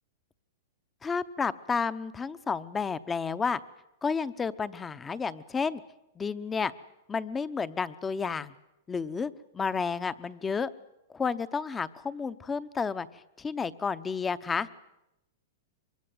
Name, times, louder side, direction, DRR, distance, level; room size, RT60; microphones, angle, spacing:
voice 1, 1.0-3.6 4.0-5.8 6.2-6.7 7.1-8.5 8.9-10.7 11.1-14.7, left 5 dB, 15° left, 15 dB, 0.8 m, -31 dB
24.0 x 22.0 x 7.8 m, 0.92 s
hypercardioid pair, 135°, 0 cm